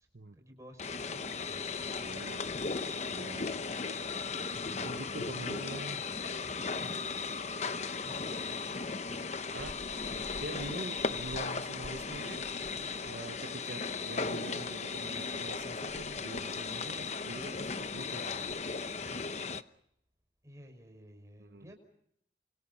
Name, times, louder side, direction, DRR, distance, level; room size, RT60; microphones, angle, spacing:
voice 1, 0.3-1.7 20.4-21.7, equal, 15° right, 5 dB, 5.6 m, -55 dB
sound 1, 0.8-19.6, left 4 dB, 40° left, 0.9 m, -36 dB
voice 2, 2.0-2.4 3.1-3.6 4.8-6.1 9.5-9.8 10.4-18.6 21.4-21.7, right 2 dB, 65° right, 8 dB, 1.0 m, -44 dB
28.5 x 26.0 x 5.6 m, 0.74 s
head